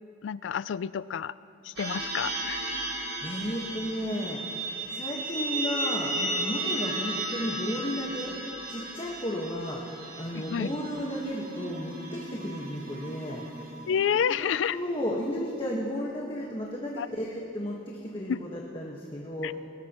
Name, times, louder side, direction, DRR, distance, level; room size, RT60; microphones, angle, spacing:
voice 1, 0.2-1.3 1.6-2.6 10.3-10.7 13.9-14.8 17.0-17.1 18.3-18.4 19.4-19.5, left 7 dB, 80° left, 18 dB, 0.4 m, -29 dB
sound 1, 1.8-14.3, right 2 dB, 60° right, 3.7 m, -35 dB
voice 2, 3.2-4.6 4.9-8.4 8.7-9.8 10.2-13.4 14.4-14.5 14.7-19.6, equal, 30° left, -3 dB, 1.4 m, -33 dB
23.0 x 19.0 x 3.0 m, 2.9 s
head